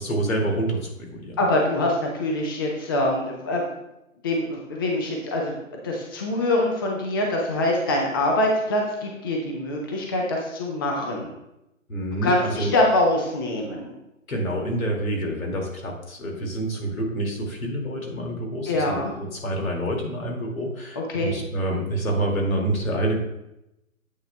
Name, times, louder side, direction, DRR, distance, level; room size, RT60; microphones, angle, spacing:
voice 1, 0.0-1.4 11.9-12.7 14.3-23.2, right 1 dB, 75° left, 0 dB, 2.3 m, -27 dB
voice 2, 1.4-3.7 4.2-5.6 5.8-11.3 12.2-13.9 18.7-19.1 21.0-21.4, left 1 dB, 15° left, -1 dB, 0.5 m, -24 dB
8.9 x 8.2 x 2.2 m, 0.89 s
figure-of-eight pair, 145°, 41 cm